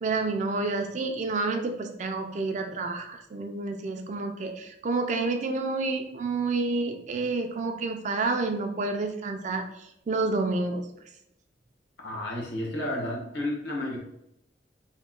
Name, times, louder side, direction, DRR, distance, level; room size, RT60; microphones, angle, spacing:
voice 1, 0.0-9.6 10.1-10.8, right 3 dB, 40° right, 5 dB, 0.3 m, -29 dB
voice 2, 12.0-14.0, left 1 dB, 80° left, -1 dB, 0.9 m, -31 dB
3.0 x 2.1 x 3.6 m, 0.79 s
head